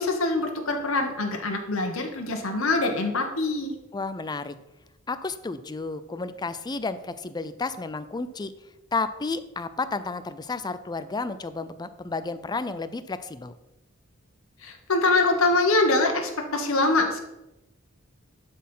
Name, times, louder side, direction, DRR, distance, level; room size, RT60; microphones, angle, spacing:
voice 1, 0.0-3.7 14.6-17.2, left 2 dB, 85° left, 3 dB, 1.3 m, -24 dB
voice 2, 3.9-4.5 5.1-8.5 8.9-13.5, left 3 dB, 20° left, 13 dB, 0.4 m, -32 dB
11.5 x 4.2 x 5.5 m, 0.97 s
head